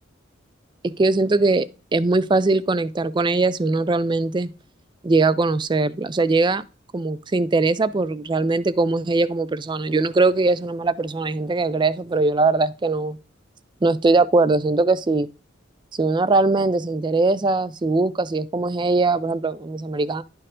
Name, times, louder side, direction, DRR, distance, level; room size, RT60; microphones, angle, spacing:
voice 1, 0.8-1.7 1.9-4.5 5.0-6.6 6.9-13.2 13.8-15.3 16.0-20.2, right 3 dB, 25° right, 0.4 m, -21 dB
11.0 x 4.5 x 3.7 m
head